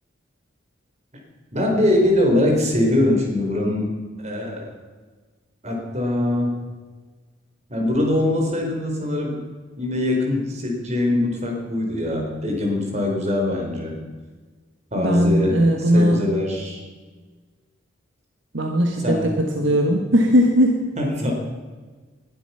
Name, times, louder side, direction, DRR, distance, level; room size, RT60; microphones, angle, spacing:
voice 1, 1.5-3.9 4.2-4.7 5.6-6.6 7.7-9.4 9.8-14.0 14.9-15.6 15.9-16.8 19.0-19.3 21.0-21.3, left 1 dB, 35° right, 1 dB, 4.2 m, -22 dB
voice 2, 14.9-16.3 18.5-20.9, equal, 65° right, 2 dB, 1.6 m, -18 dB
20.5 x 11.5 x 5.7 m, 1.4 s
head